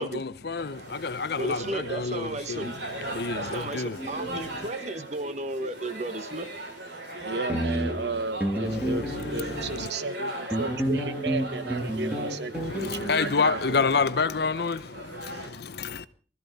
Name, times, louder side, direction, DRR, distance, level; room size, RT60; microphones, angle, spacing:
voice 1, 0.0-4.7 8.7-9.9 12.5-16.1, left 4 dB, 60° left, 0.7 m, -29 dB
sound 1, 0.6-15.5, right 1 dB, 80° right, 6.0 m, -39 dB
voice 2, 1.4-2.7 3.3-6.5, right 2 dB, 40° right, 1.1 m, -34 dB
sound 2, 4.0-4.3 7.2-7.3 7.5-9.8 10.5-13.5, right 1 dB, 10° right, 2.0 m, -30 dB
voice 3, 7.2-14.0, right 3 dB, 65° right, 0.9 m, -34 dB
20.5 x 13.5 x 4.1 m
head